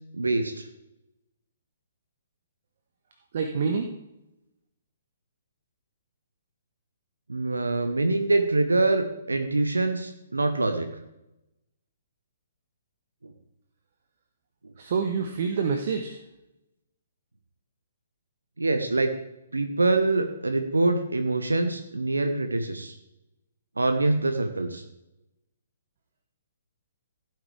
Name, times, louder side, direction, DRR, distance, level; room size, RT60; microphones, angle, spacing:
voice 1, 0.1-0.7 7.3-10.9 14.6-14.7 18.6-19.1 19.5-22.9 23.8-24.8, right 2 dB, 75° right, 7 dB, 1.1 m, -25 dB
voice 2, 3.3-3.9 14.8-16.2, right 5 dB, 45° right, 5 dB, 1.0 m, -27 dB
16.0 x 9.4 x 3.3 m, 0.90 s
figure-of-eight pair, 125°, 0 cm